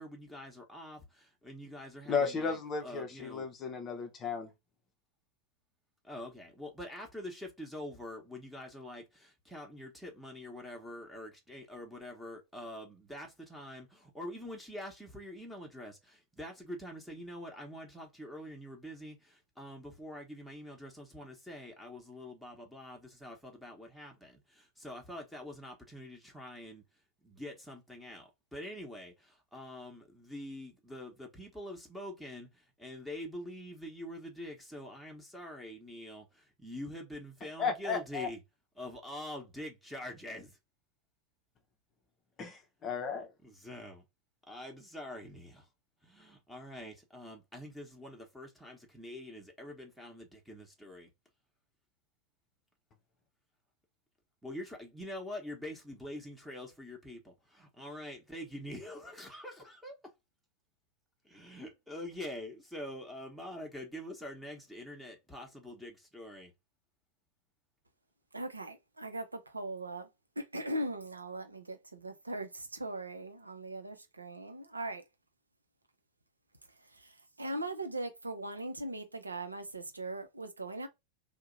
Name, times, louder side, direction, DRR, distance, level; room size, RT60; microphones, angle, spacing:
voice 1, 0.0-2.6 2.8-3.5 6.0-26.8 27.2-32.5 32.8-38.4 38.8-40.5 43.4-44.0 44.5-45.6 46.0-51.1 54.4-59.9 61.3-66.5, left 1 dB, ahead, 0.9 m, -45 dB
voice 2, 2.1-4.5 37.6-38.3 42.4-43.3, left 5 dB, 25° left, 0.6 m, -34 dB
voice 3, 68.3-70.1 70.4-75.0 77.0-77.1 77.4-80.9, right 1 dB, 80° right, 0.6 m, -39 dB
2.7 x 2.1 x 3.8 m
figure-of-eight pair, 90°, 0 cm